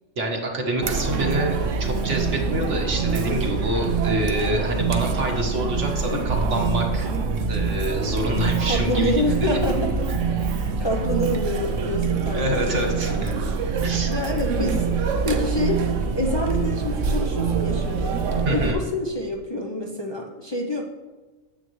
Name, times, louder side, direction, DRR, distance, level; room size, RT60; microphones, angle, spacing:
voice 1, 0.2-7.1 7.5-9.2 10.0-10.2 12.3-13.4 13.8-14.1 18.4-18.8, right 1 dB, 70° right, 1 dB, 1.6 m, -27 dB
Chatter, 0.8-18.7, right 5 dB, 90° right, 1.1 m, -25 dB
voice 2, 3.2-4.0 6.1-6.2 8.6-9.9 10.5-13.3 14.1-14.8 15.2-15.9 16.1-18.2 18.5-20.8, left 1 dB, 25° left, -1 dB, 0.6 m, -27 dB
9.4 x 7.8 x 3.1 m, 1.3 s
omnidirectional pair, 1.3 m